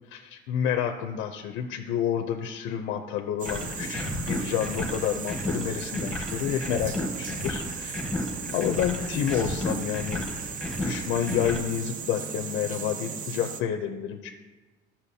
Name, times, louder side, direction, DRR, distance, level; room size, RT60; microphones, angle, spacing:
voice 1, 0.2-8.0 8.5-10.3 10.8-14.3, left 9 dB, 90° left, 4 dB, 0.6 m, -29 dB
sound 1, 3.4-11.6, left 1 dB, 5° left, 0.9 m, -33 dB
sound 2, 3.4-13.6, right 7 dB, 45° right, 0.6 m, -37 dB
13.5 x 5.8 x 2.8 m, 1.2 s
cardioid pair, 165°, 20 cm